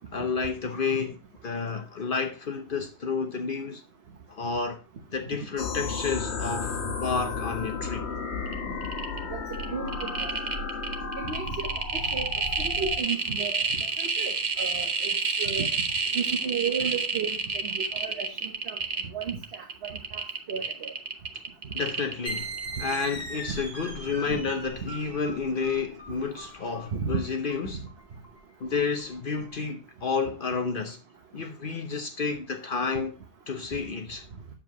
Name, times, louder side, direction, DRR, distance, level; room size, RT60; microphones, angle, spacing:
voice 1, 0.1-3.8 4.3-4.8 5.1-8.1 21.7-27.8 28.6-31.0 31.3-33.1 33.5-34.3, left 5 dB, 55° left, 0.9 m, -30 dB
sound 1, 5.6-13.0, left 4 dB, 75° left, 1.3 m, -33 dB
sound 2, 8.5-8.6 8.8-9.2 9.5-22.6 22.9-23.0, right 4 dB, 45° right, 0.9 m, -29 dB
voice 2, 9.3-10.4 11.2-12.3 12.6-13.6 14.0-15.1 15.4-15.7 16.1-18.8 19.1-20.2 20.5-20.9 24.3-24.4 26.9-27.1, right 6 dB, 65° right, 1.3 m, -34 dB
sound 3, 22.3-29.5, right 1 dB, 20° left, 4.3 m, -40 dB
8.5 x 7.3 x 2.9 m
omnidirectional pair, 1.1 m